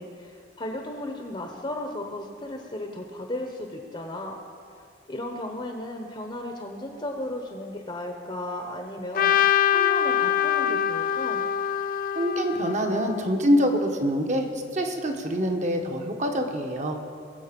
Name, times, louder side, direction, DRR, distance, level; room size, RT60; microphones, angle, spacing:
voice 1, 0.0-4.4 5.1-9.3 9.7-11.5, left 1 dB, 30° left, 3 dB, 1.0 m, -35 dB
Trumpet, 9.1-13.3, left 10 dB, 50° left, 0.4 m, -24 dB
voice 2, 12.1-14.5 14.7-17.0, equal, 40° right, 4 dB, 1.3 m, -25 dB
20.5 x 7.8 x 5.3 m, 2.5 s
head